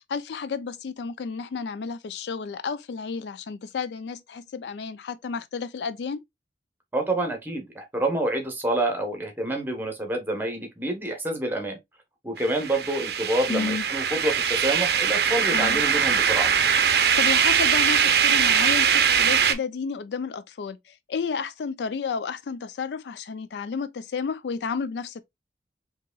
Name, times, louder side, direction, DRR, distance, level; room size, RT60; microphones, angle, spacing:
voice 1, 0.0-6.2 13.5-13.9 15.5-15.8 17.2-25.2, left 5 dB, 75° left, 0.4 m, -31 dB
voice 2, 6.9-11.8 12.2-16.5, right 1 dB, 10° right, 0.9 m, -27 dB
sound 1, 12.4-19.5, right 7 dB, 65° right, 0.5 m, -21 dB
4.7 x 2.9 x 2.3 m
head